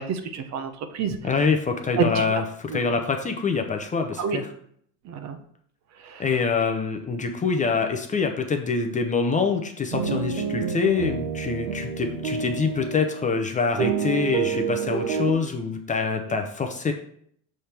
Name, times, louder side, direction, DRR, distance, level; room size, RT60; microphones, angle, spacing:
voice 1, 0.0-1.2 2.0-2.2 2.7-3.0 4.2-4.4 5.0-5.4 6.0-6.2, right 5 dB, 45° right, 9 dB, 0.7 m, -28 dB
voice 2, 1.2-4.5 6.2-16.9, left 5 dB, 20° left, 4 dB, 0.6 m, -25 dB
sound 1, 9.9-13.3 13.8-15.3, right 6 dB, 85° right, 1.0 m, -28 dB
6.3 x 3.5 x 4.3 m, 0.65 s
supercardioid pair, 120°, 38 cm